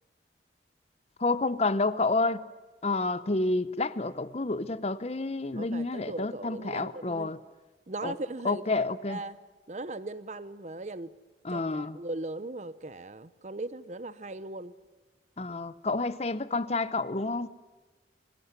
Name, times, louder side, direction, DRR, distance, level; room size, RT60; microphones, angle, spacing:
voice 1, 1.2-2.4 2.8-7.4 8.0-8.1 8.4-9.2 11.4-12.0 15.4-17.5, left 3 dB, 35° left, 0.7 m, -29 dB
voice 2, 5.5-7.3 7.9-9.4 9.7-11.1 11.5-14.7, right 2 dB, 40° right, 0.8 m, -38 dB
25.0 x 17.0 x 9.6 m
head